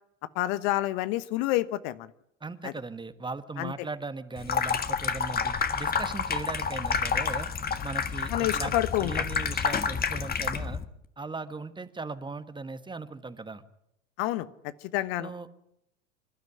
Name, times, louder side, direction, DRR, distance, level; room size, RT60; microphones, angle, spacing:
voice 1, 0.3-2.1 2.6-2.7 3.6-3.7 8.3-9.1 14.2-14.5 14.9-15.3, left 16 dB, 55° left, 14 dB, 1.2 m, -28 dB
voice 2, 2.4-7.5 7.8-10.8 11.2-13.6 15.2-15.5, right 3 dB, 10° right, 12 dB, 1.5 m, -38 dB
Water tap faucet / Sink (filling or washing), 4.4-10.8, left 6 dB, 25° left, 1.7 m, -29 dB
26.5 x 12.5 x 9.8 m, 0.78 s
hypercardioid pair, 85°, 38 cm